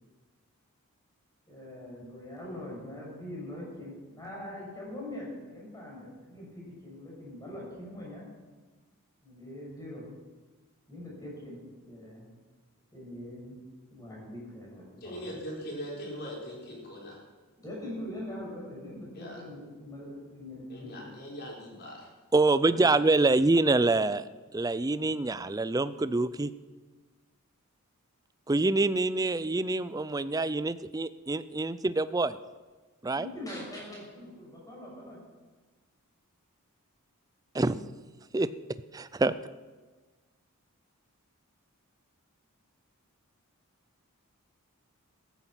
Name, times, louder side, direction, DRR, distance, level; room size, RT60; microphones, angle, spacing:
voice 1, 1.5-8.2 9.2-10.0 10.9-11.6 11.8-12.3 12.9-13.5 13.9-15.2 17.6-21.1 22.6-22.8 33.1-35.2, left 1 dB, 15° left, -4 dB, 6.5 m, -42 dB
voice 2, 15.0-17.2 19.1-19.4 20.7-22.1, equal, 45° left, -2 dB, 4.7 m, -41 dB
voice 3, 22.3-24.2 24.5-26.5 28.5-32.4 33.0-33.3 37.5-37.8 38.3-38.5 38.9-39.3, right 2 dB, 15° right, 15 dB, 0.4 m, -26 dB
14.0 x 14.0 x 5.9 m, 1.3 s
head